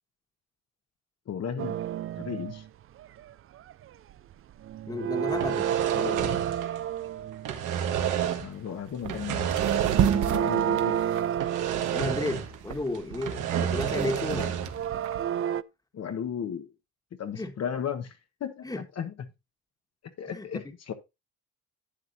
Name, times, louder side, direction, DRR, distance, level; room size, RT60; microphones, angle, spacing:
voice 1, 1.3-1.8 2.2-2.6 8.4-9.5 10.0-11.0 13.9-14.1 15.9-16.7 17.2-18.1 18.4-19.1 20.2-20.9, left 8 dB, 55° left, 1.2 m, -35 dB
sound 1, 1.6-2.7 3.0-3.3 3.6-4.3 4.6-7.6 9.3-9.4 9.6-15.6, right 10 dB, 45° right, 0.4 m, -31 dB
voice 2, 4.9-6.4 11.9-14.6 17.4-17.5 18.6-18.8 20.3-20.6, left 2 dB, 10° left, 1.5 m, -33 dB
sound 2, 5.3-7.0 7.3-8.5 9.0-10.4 10.7-10.8 11.4-12.6 12.9-14.8, right 9 dB, 85° right, 1.6 m, -30 dB
sound 3, 8.5-8.6 9.0-9.2 9.5-12.2 12.7-15.2, right 9 dB, 70° right, 1.2 m, -30 dB
11.5 x 8.2 x 2.6 m
cardioid pair, 90°, 30 cm